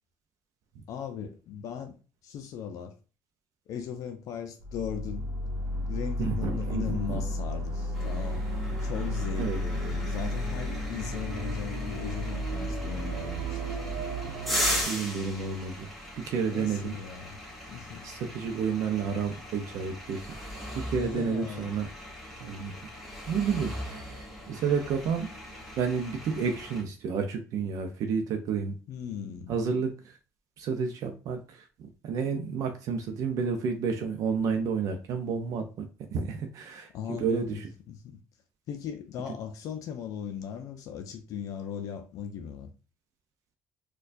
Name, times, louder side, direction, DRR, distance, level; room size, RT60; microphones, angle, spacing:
voice 1, 0.9-2.0 2.2-2.9 3.7-5.3 5.9-13.8 16.5-17.4 17.7-18.1 20.9-21.7 28.9-29.5 36.9-37.6 37.9-38.2 38.7-42.7, left 8 dB, 65° left, 0.4 m, -38 dB
sound 1, 4.6-14.8, equal, 90° right, 0.8 m, -33 dB
voice 2, 6.2-7.2 9.3-9.6 14.8-15.9 16.2-17.0 18.0-20.2 20.7-21.9 22.4-22.7 23.3-25.3 25.8-28.7 29.5-30.2 30.6-31.6 32.0-35.9 36.1-37.7, right 6 dB, 65° right, 0.5 m, -30 dB
sound 2, 7.9-26.8, equal, ahead, 1.0 m, -39 dB
4.4 x 2.3 x 2.5 m
cardioid pair, 135°, 6 cm